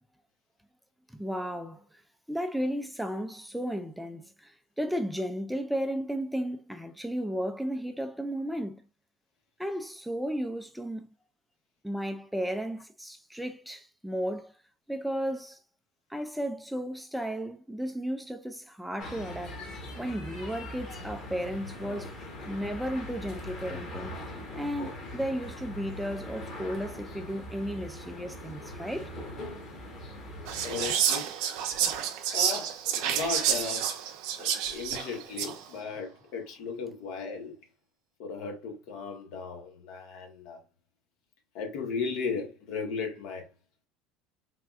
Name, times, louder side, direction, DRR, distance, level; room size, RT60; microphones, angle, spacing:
voice 1, 1.2-1.8 2.3-4.5 4.8-8.8 9.6-11.1 11.8-14.5 14.9-15.6 16.1-19.7 20.0-22.1 22.5-24.1 24.6-29.1, equal, ahead, 0.4 m, -34 dB
sound 1, 19.0-30.9, left 1 dB, 45° left, 1.3 m, -41 dB
Whispering, 30.5-35.6, right 9 dB, 70° right, 0.5 m, -29 dB
voice 2, 30.6-31.3 32.3-33.9 34.4-37.6 38.2-40.6 41.5-43.5, left 5 dB, 70° left, 1.0 m, -36 dB
3.5 x 2.2 x 2.4 m
supercardioid pair, 90°, 0 cm